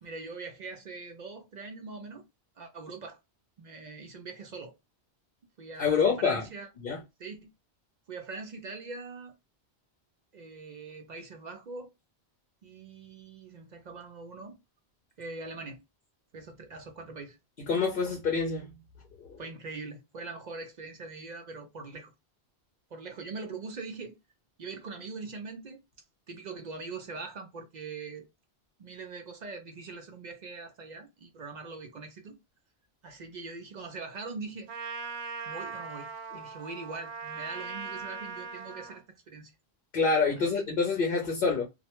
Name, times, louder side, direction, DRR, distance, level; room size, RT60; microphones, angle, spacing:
voice 1, 0.0-2.3 2.6-3.2 3.6-4.7 5.6-6.7 7.2-7.5 8.1-9.3 10.3-11.9 12.6-14.6 15.2-15.8 16.3-17.4 19.4-22.1 22.9-24.2 24.6-25.8 26.3-28.3 28.8-32.4 33.0-34.7 35.5-39.5 40.4-40.6, right 4 dB, 55° right, 0.5 m, -42 dB
voice 2, 5.8-6.4 6.8-7.0 17.7-18.7 19.2-19.4 39.9-41.7, left 4 dB, 60° left, 0.8 m, -26 dB
Trumpet, 34.7-39.0, right 4 dB, 85° right, 0.9 m, -40 dB
2.3 x 2.1 x 2.8 m
omnidirectional pair, 1.1 m